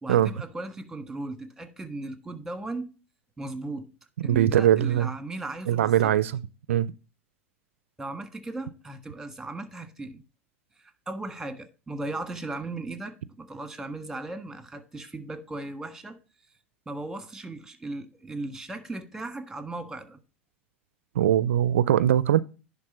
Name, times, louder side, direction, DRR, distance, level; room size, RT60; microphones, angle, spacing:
voice 1, 0.0-2.9 3.4-3.9 4.2-6.2 8.0-10.2 10.8-16.2 16.8-20.2, right 2 dB, 10° right, 1.4 m, -37 dB
voice 2, 4.2-5.1 5.7-6.3 6.7-6.9 21.2-22.4, right 11 dB, 75° right, 0.4 m, -21 dB
10.5 x 3.6 x 5.3 m
hypercardioid pair, 85°, 7 cm